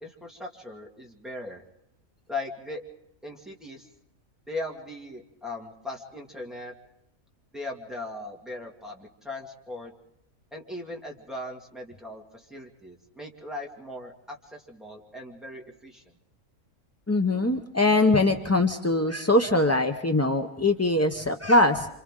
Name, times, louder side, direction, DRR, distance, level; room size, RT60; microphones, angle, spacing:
voice 1, 0.0-1.6 2.3-2.8 3.2-3.9 4.5-6.7 7.5-9.9 10.5-16.0, left 2 dB, ahead, -2 dB, 2.2 m, -38 dB
voice 2, 17.1-21.9, left 2 dB, 20° left, 4 dB, 0.4 m, -22 dB
30.0 x 26.0 x 3.7 m, 0.79 s
omnidirectional pair, 1.5 m